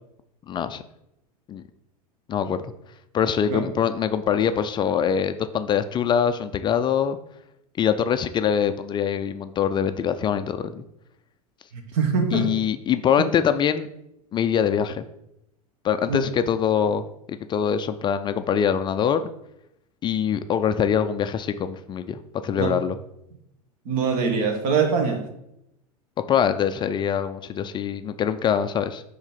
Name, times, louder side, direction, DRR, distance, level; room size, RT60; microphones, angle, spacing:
voice 1, 0.5-0.8 1.5-1.6 2.3-2.6 3.1-7.2 7.8-10.8 12.3-13.9 14.3-15.0 15.8-19.3 20.0-23.0 26.3-29.0, left 8 dB, 25° left, 9 dB, 0.4 m, -23 dB
voice 2, 11.7-12.5 13.2-13.3 16.1-16.2 22.6-22.7 23.8-25.2, right 5 dB, 50° right, 4 dB, 1.6 m, -23 dB
7.1 x 3.2 x 5.6 m, 0.81 s
figure-of-eight pair, 85°, 20 cm